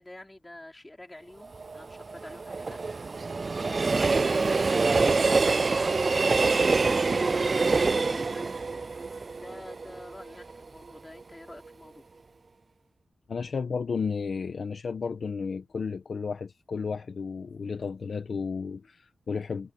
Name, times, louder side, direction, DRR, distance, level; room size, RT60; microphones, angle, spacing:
voice 1, 0.0-8.5 8.8-8.9 9.3-12.1, left 1 dB, 15° left, 4.2 m, -48 dB
Train, 1.4-10.5 10.9-11.0, right 4 dB, 35° right, 0.3 m, -26 dB
voice 2, 13.3-19.7, left 5 dB, 50° left, 1.4 m, -33 dB
wide cardioid pair, 145°, 0 cm